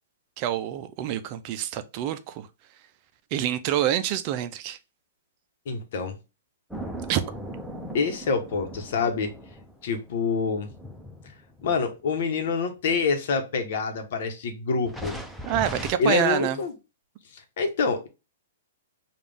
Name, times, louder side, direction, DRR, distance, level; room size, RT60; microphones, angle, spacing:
voice 1, 0.4-2.5 3.3-4.8 7.1-7.2 15.5-16.6, right 11 dB, 40° right, 0.5 m, -27 dB
voice 2, 5.7-6.2 7.9-9.3 9.8-10.7 11.6-15.2 16.0-16.7 17.6-18.1, left 5 dB, 60° left, 1.1 m, -26 dB
sound 1, 6.7-12.2 12.9-13.0 14.9-15.9, equal, ahead, 0.8 m, -39 dB
5.0 x 2.5 x 3.5 m
hypercardioid pair, 120°, 0 cm